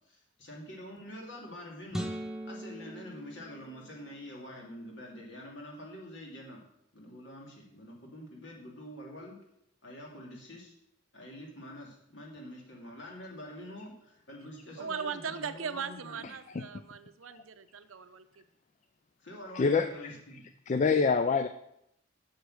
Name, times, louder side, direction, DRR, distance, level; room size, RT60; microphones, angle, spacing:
voice 1, 0.0-2.1 2.4-6.6 6.9-9.4 9.8-10.7 11.1-16.3 19.2-20.5, left 1 dB, 60° left, -1 dB, 2.4 m, -46 dB
sound 1, 1.9-4.3, equal, ahead, 0.7 m, -40 dB
voice 2, 14.8-18.4, right 6 dB, 90° right, 11 dB, 0.7 m, -39 dB
voice 3, 19.5-20.1 20.7-21.5, left 5 dB, 35° left, 10 dB, 0.3 m, -26 dB
8.1 x 6.4 x 6.3 m, 0.78 s
head